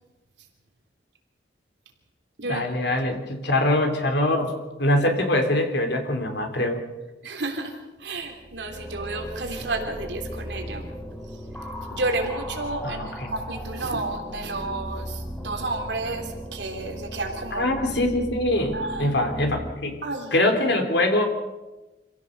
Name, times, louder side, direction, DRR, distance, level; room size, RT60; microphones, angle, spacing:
voice 1, 2.4-4.5 4.8-6.8 12.8-13.3 17.6-20.0 20.3-21.2, left 1 dB, 70° left, 4 dB, 3.5 m, -23 dB
voice 2, 7.2-7.7 8.0-10.8 11.9-17.7 18.7-19.1 20.0-20.3, right 2 dB, 75° right, 2 dB, 3.3 m, -31 dB
sound 1, 8.1-19.7, equal, 5° left, 3.6 m, -37 dB
26.5 x 16.5 x 6.6 m, 1.1 s
head